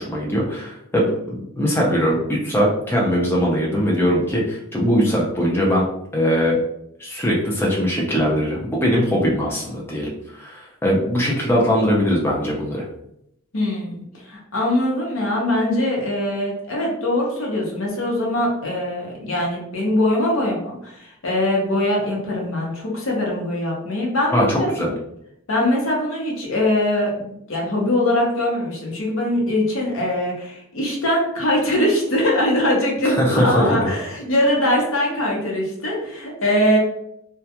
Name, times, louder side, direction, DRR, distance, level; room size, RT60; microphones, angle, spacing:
voice 1, 0.0-5.9 6.1-6.6 7.0-12.9 24.3-24.9 33.0-33.8, equal, 10° left, -4 dB, 0.4 m, -21 dB
voice 2, 13.5-24.9 25.5-36.8, left 1 dB, 75° left, -2 dB, 0.7 m, -22 dB
2.3 x 2.1 x 2.8 m, 0.75 s
head